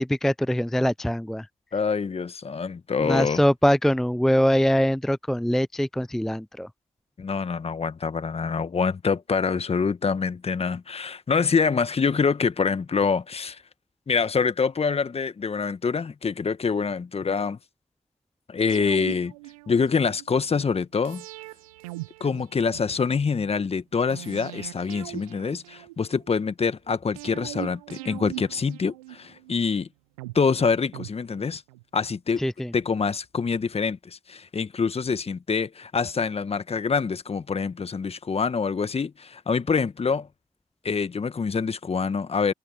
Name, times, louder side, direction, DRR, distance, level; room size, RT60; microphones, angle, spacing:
voice 1, 0.0-1.5 3.0-6.7 32.4-32.7, equal, ahead, 0.6 m, -23 dB
voice 2, 1.7-3.4 7.2-13.6 14.1-17.6 18.5-19.3 19.7-21.2 22.2-29.9 30.3-31.6 31.9-32.4 32.7-40.3 40.8-42.5, left 5 dB, 35° left, 1.6 m, -25 dB
sound 1, 18.7-20.3 21.0-23.2 24.1-26.3 27.2-29.5 30.2-31.8 32.1-32.2, right 22 dB, 85° right, 1.0 m, -41 dB
hypercardioid pair, 45°, 18 cm